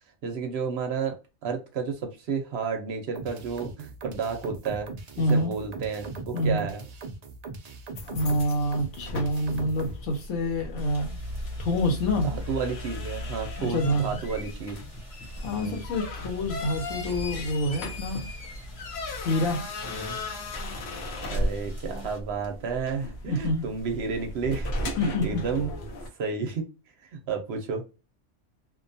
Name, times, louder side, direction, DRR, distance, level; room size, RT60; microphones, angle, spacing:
voice 1, 0.2-1.2 1.4-4.9 5.2-6.8 12.2-14.8 15.5-15.8 19.8-20.2 21.2-25.7 26.2-26.7 27.1-27.9, right 5 dB, 65° right, 0.8 m, -31 dB
sound 1, 3.2-10.0, right 3 dB, 85° right, 0.3 m, -40 dB
voice 2, 5.2-5.5 6.3-6.7 8.0-11.2 11.6-12.3 13.6-14.2 15.4-18.3 19.2-19.6 23.3-23.6 25.0-25.4, left 1 dB, 85° left, 1.1 m, -27 dB
sound 2, 8.0-26.1, left 1 dB, 65° left, 0.8 m, -36 dB
sound 3, 10.8-22.2, equal, 30° left, 1.0 m, -45 dB
2.6 x 2.2 x 2.5 m
omnidirectional pair, 1.3 m